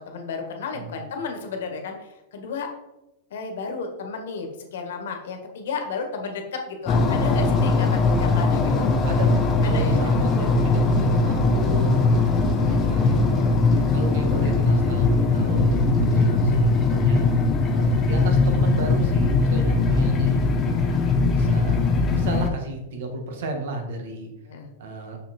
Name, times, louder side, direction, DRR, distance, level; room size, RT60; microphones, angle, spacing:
voice 1, 0.1-2.7 3.3-8.9 9.6-10.2 13.7-13.9 24.5-24.7, left 5 dB, 70° left, 4 dB, 1.8 m, -33 dB
voice 2, 0.7-1.0 8.5-13.5 13.9-17.3 17.7-24.3 24.8-25.2, right 3 dB, 55° right, 3 dB, 1.7 m, -34 dB
sound 1, 6.9-22.5, left 3 dB, 15° left, 0.7 m, -20 dB
6.7 x 5.7 x 4.4 m, 0.94 s
supercardioid pair, 175°, 0 cm